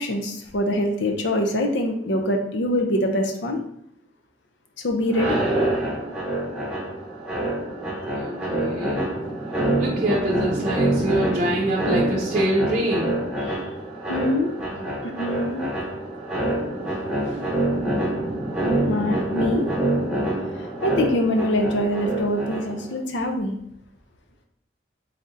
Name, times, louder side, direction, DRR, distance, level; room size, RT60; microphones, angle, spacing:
voice 1, 0.0-3.6 4.8-5.4 13.4-13.7 14.1-14.5 15.0-15.6 16.9-17.0 17.3-17.4 18.8-19.7 20.5-23.6, left 1 dB, 90° left, 3 dB, 0.6 m, -24 dB
sound 1, 5.1-22.9, right 1 dB, 5° right, 0.8 m, -26 dB
voice 2, 8.1-9.1 9.8-13.2 14.8-14.9, right 1 dB, 40° right, -5 dB, 0.5 m, -25 dB
3.7 x 3.4 x 2.6 m, 0.75 s
head